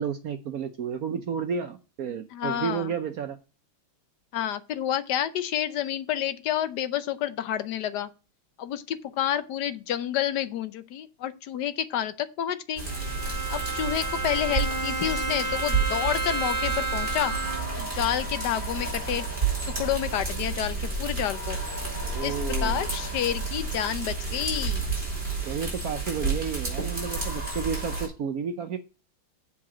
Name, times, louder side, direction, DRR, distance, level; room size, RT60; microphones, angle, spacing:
voice 1, 0.0-3.4 22.0-22.8 25.5-28.8, right 7 dB, 70° right, 0.8 m, -31 dB
voice 2, 2.3-2.9 4.3-8.1 8.6-12.8 13.5-17.3 17.8-19.3 19.7-21.6 22.2-22.3 22.6-24.9, left 10 dB, 65° left, 1.1 m, -29 dB
Bowed string instrument, 12.8-17.9, right 2 dB, 30° left, 1.2 m, -31 dB
sound 1, 12.8-28.1, right 4 dB, 25° right, 4.2 m, -31 dB
7.5 x 4.9 x 7.2 m
omnidirectional pair, 2.3 m